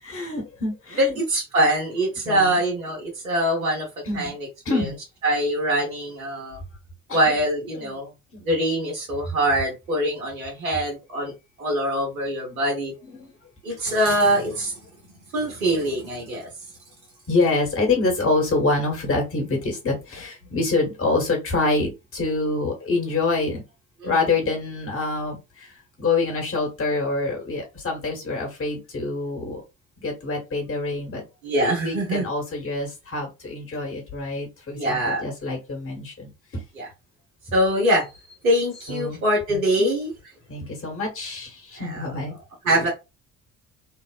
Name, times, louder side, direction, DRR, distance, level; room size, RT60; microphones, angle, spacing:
voice 1, 0.0-1.1 2.2-2.6 4.0-4.3 4.6-4.9 7.1-7.3 7.7-8.0 8.3-8.5 12.5-12.6 13.0-13.3 17.3-23.6 24.0-29.6 30.0-31.2 31.8-36.6 38.9-39.2 39.5-39.9 40.5-42.3, left 3 dB, 30° left, 1.3 m, -26 dB
voice 2, 1.0-3.9 4.1-4.4 4.7-4.9 5.2-6.6 7.1-8.1 8.4-11.3 11.6-12.9 13.6-14.7 15.3-16.5 24.0-24.1 31.4-32.2 34.7-35.3 36.8-36.9 37.5-38.1 38.4-40.1 41.8-42.0 42.6-42.9, right 1 dB, 85° right, 1.0 m, -23 dB
2.8 x 2.0 x 2.4 m
figure-of-eight pair, 50°, 41 cm